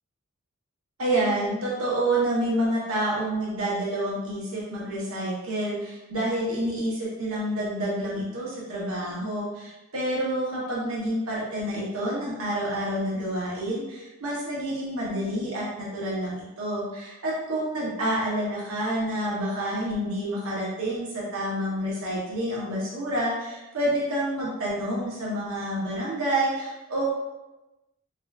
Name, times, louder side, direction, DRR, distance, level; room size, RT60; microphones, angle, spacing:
voice 1, 1.0-27.0, right 1 dB, 85° right, -6 dB, 0.8 m, -28 dB
3.7 x 2.2 x 2.3 m, 1.0 s
head